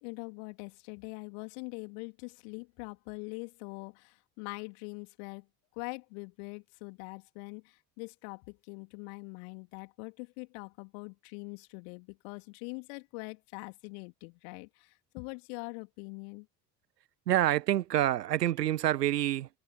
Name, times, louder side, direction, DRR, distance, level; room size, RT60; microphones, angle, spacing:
voice 1, 0.0-5.5 5.7-16.5, left 39 dB, 60° left, 3.4 m, -43 dB
voice 2, 17.3-19.5, right 13 dB, 70° right, 1.5 m, -27 dB
figure-of-eight pair, 60°, 50 cm